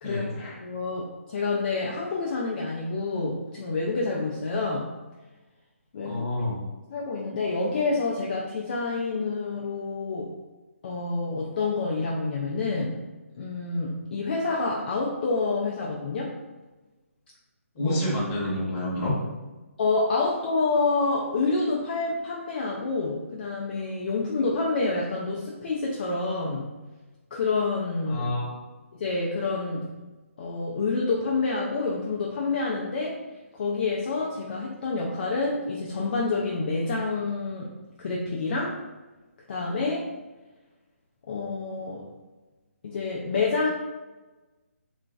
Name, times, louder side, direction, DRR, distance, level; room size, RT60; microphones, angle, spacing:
voice 1, 0.0-0.6 6.0-6.6 17.7-19.1 28.1-28.6, left 1 dB, 20° left, -6 dB, 0.9 m, -29 dB
voice 2, 0.6-4.9 5.9-6.2 6.9-10.3 10.8-13.1 13.3-16.3 17.8-18.1 19.8-26.7 27.3-28.2 28.9-29.9 30.4-33.2 33.5-37.7 38.0-38.8 39.5-40.1 41.3-42.0 42.8-43.7, left 3 dB, 40° left, -3 dB, 0.4 m, -28 dB
2.9 x 2.4 x 2.3 m, 1.2 s
figure-of-eight pair, 150°, 8 cm